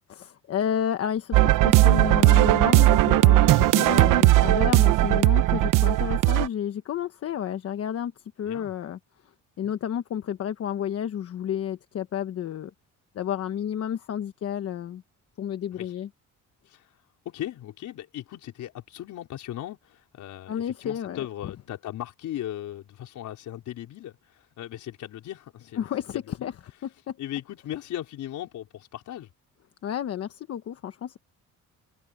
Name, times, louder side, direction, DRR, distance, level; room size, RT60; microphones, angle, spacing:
voice 1, 0.1-12.7 13.1-15.0 15.4-16.1 20.5-21.2 25.8-26.5 26.8-27.2 29.8-31.2, left 9 dB, 50° left, 1.1 m, -31 dB
sound 1, 1.3-6.5, right 16 dB, 85° right, 0.9 m, -18 dB
voice 2, 16.6-17.0 17.2-25.9 26.1-26.5 27.2-29.3, left 12 dB, 65° left, 5.0 m, -38 dB
cardioid pair, 155°, 31 cm